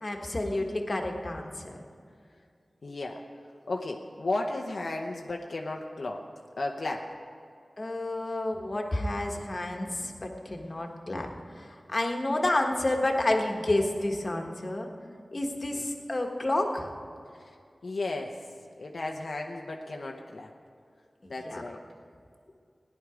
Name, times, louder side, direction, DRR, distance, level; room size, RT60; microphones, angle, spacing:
voice 1, 0.0-1.7 7.8-11.3 11.5-14.9 15.3-16.9 21.2-21.6, left 1 dB, 40° left, 2 dB, 1.4 m, -30 dB
voice 2, 2.8-3.2 3.7-6.2 6.6-7.1 15.7-15.8 17.4-17.5 17.8-18.4 18.8-20.5 21.3-21.8, left 2 dB, 75° left, 1 dB, 0.8 m, -34 dB
17.5 x 10.5 x 5.0 m, 2.3 s
wide cardioid pair, 80°, 0 cm